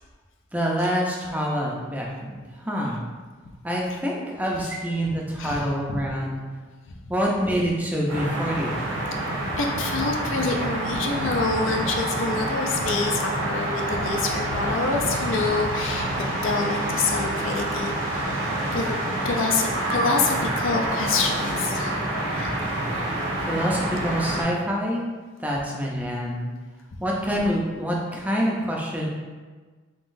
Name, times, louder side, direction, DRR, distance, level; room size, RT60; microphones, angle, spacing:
voice 1, 0.5-3.0 3.6-6.4 7.1-8.7 23.5-25.1 25.4-26.4 27.0-29.1, equal, 10° right, -2 dB, 0.4 m, -26 dB
voice 2, 5.4-6.0 6.9-7.0 9.4-17.9 18.7-22.6, left 3 dB, 75° left, 1 dB, 0.5 m, -27 dB
sound 1, 8.1-24.4, right 1 dB, 70° right, 1.0 m, -27 dB
4.0 x 3.7 x 2.5 m, 1.4 s
head